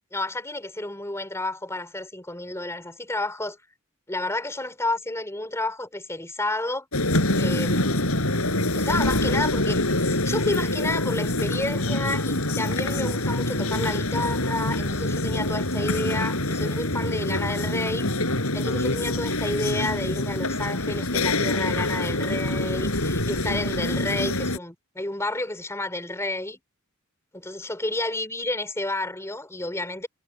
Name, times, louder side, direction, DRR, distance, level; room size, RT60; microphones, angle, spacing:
voice 1, 0.1-3.6 4.1-6.9 7.4-8.1 8.7-18.3 18.5-26.6 27.3-30.1, left 2 dB, 15° left, 3.7 m, -30 dB
sound 1, 6.9-24.6, left 1 dB, 80° left, 7.6 m, -25 dB
head